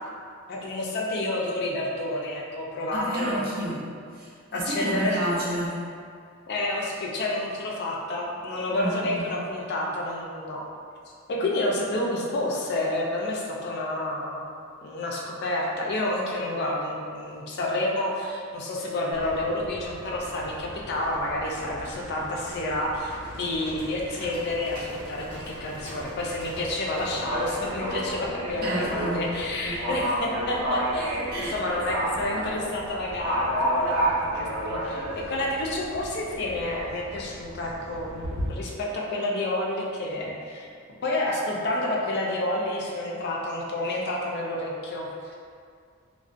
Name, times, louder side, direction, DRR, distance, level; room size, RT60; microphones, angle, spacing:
voice 1, 0.5-3.4 4.5-5.3 6.5-10.6 11.3-14.4 14.8-40.7 41.0-45.4, left 1 dB, 50° left, -2 dB, 0.4 m, -29 dB
voice 2, 2.9-3.8 4.1-5.8 8.7-9.3 28.6-29.3 29.6-29.8 31.3-31.5, right 1 dB, 45° right, -6 dB, 0.6 m, -30 dB
Livestock farm animals working animals, 19.1-38.5, right 1 dB, 85° right, 1.0 m, -33 dB
2.4 x 2.1 x 2.4 m, 2.2 s
head